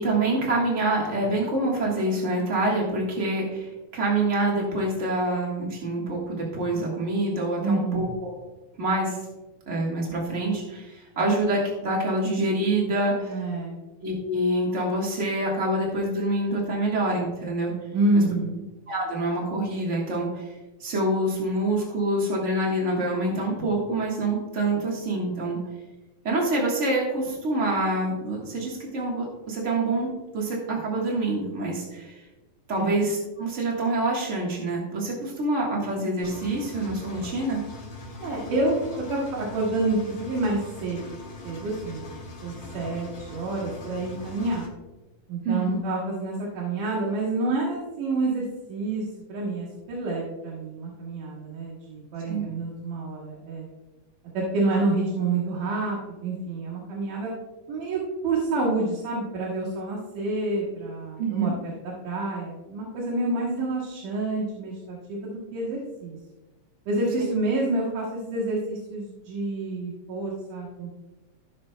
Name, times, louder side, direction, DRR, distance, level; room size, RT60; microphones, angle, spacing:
voice 1, 0.0-8.4 8.8-9.2 9.7-13.4 14.0-17.7 18.1-18.2 18.9-25.6 26.2-32.2 32.7-37.6 45.4-45.8 52.3-52.5 61.2-61.5, right 2 dB, 50° right, -3 dB, 0.8 m, -26 dB
voice 2, 7.6-8.1 13.2-13.7 17.9-18.6 32.7-33.0 38.2-41.0 41.4-44.7 45.3-53.7 54.3-57.3 57.7-66.2 66.9-70.9, right 2 dB, 80° right, -6 dB, 3.1 m, -28 dB
Engine, 36.2-44.7, left 2 dB, 60° left, 2.9 m, -41 dB
16.5 x 6.2 x 2.2 m, 1.1 s
omnidirectional pair, 3.6 m